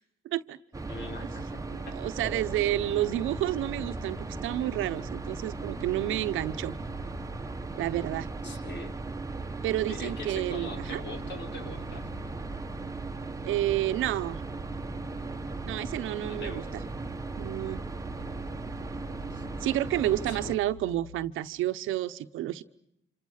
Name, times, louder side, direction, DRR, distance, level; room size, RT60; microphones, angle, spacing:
voice 1, 0.2-0.6 1.7-6.7 7.7-8.3 9.6-11.0 13.4-14.4 15.6-16.6 17.4-17.8 19.6-22.6, right 13 dB, 85° right, 12 dB, 1.0 m, -30 dB
sound 1, 0.7-20.6, right 3 dB, 15° right, 1.2 m, -37 dB
voice 2, 0.9-2.0 2.5-2.6 8.4-8.9 9.9-12.1 16.2-16.7 19.3-19.4 20.3-20.5, left 3 dB, 65° left, 4 dB, 4.2 m, -43 dB
sound 2, 2.2-21.3, left 1 dB, 85° left, 3.7 m, -50 dB
28.0 x 27.0 x 6.5 m, 0.78 s
cardioid pair, 90°, 20 cm